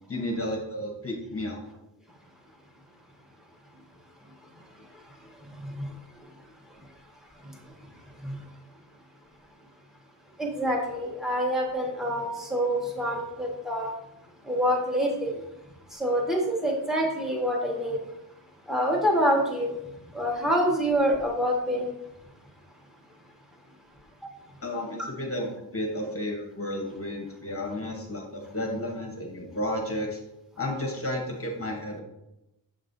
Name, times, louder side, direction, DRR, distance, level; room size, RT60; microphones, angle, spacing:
voice 1, 0.1-1.6 24.6-30.2 30.6-32.0, left 1 dB, 30° left, 1 dB, 1.2 m, -32 dB
voice 2, 10.4-13.9 14.4-15.3 15.9-18.0 18.7-19.8 20.1-21.9, equal, ahead, -1 dB, 1.4 m, -26 dB
7.5 x 5.3 x 2.7 m, 0.88 s
wide cardioid pair, 100°, 45 cm